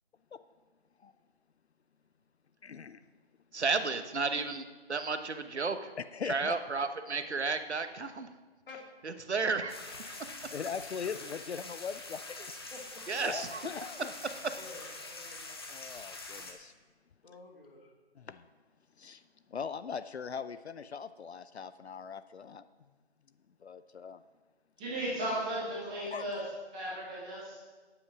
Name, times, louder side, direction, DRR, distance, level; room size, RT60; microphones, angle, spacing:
voice 1, 2.6-3.0 6.0-6.5 10.5-12.4 13.2-14.1 15.7-16.7 18.2-18.5 19.0-19.2 19.5-22.7 23.6-24.2 26.1-26.2, left 6 dB, 70° left, 13 dB, 0.6 m, -40 dB
voice 2, 3.5-4.6 4.9-5.9 6.3-8.3 9.0-9.7 10.1-10.2 13.1-13.6, right 4 dB, 80° right, 9 dB, 1.1 m, -32 dB
sound 1, 9.7-16.5, left 3 dB, 20° left, 0.8 m, -45 dB
voice 3, 12.7-13.2 14.5-15.4 17.2-17.9, left 3 dB, 55° left, 0 dB, 2.7 m, -50 dB
voice 4, 24.8-26.4 26.7-27.6, right 1 dB, 5° right, -7 dB, 0.9 m, -35 dB
8.8 x 7.8 x 6.2 m, 1.3 s
figure-of-eight pair, 165°, 33 cm